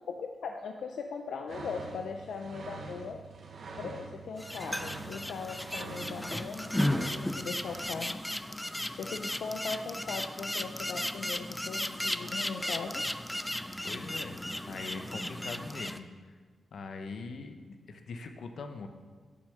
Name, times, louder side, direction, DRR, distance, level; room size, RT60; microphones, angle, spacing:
voice 1, 0.1-3.2 3.8-8.2 9.0-13.0, left 5 dB, 85° left, 4 dB, 0.5 m, -39 dB
sound 1, 1.5-7.8, right 4 dB, 65° right, 1.2 m, -45 dB
sound 2, 4.4-16.0, left 1 dB, 5° left, 0.4 m, -35 dB
voice 2, 13.8-14.4 14.7-16.1 16.7-18.9, left 4 dB, 70° left, 6 dB, 0.9 m, -42 dB
8.2 x 6.4 x 6.6 m, 1.5 s
wide cardioid pair, 135°, 0 cm